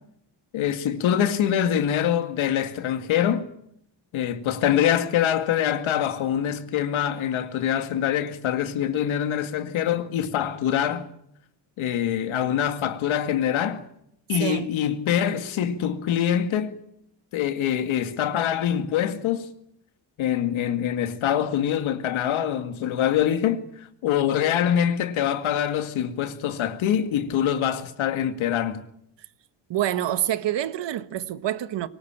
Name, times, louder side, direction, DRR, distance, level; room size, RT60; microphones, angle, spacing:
voice 1, 0.5-3.5 4.1-11.1 11.8-13.9 14.3-16.8 17.3-19.5 20.2-28.8, left 10 dB, 80° left, 2.2 m, -24 dB
voice 2, 14.4-14.7 29.7-31.9, right 12 dB, 60° right, 1.4 m, -27 dB
24.0 x 19.0 x 9.0 m
cardioid pair, 120°, 47 cm